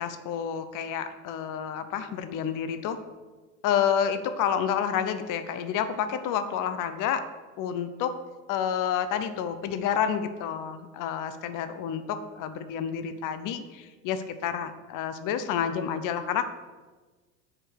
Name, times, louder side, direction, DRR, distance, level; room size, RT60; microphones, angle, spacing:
voice 1, 0.0-3.0 3.6-7.2 7.6-8.1 8.5-16.5, left 8 dB, 45° left, 10 dB, 0.8 m, -29 dB
7.3 x 4.9 x 6.3 m, 1.3 s
hypercardioid pair, 75°, 43 cm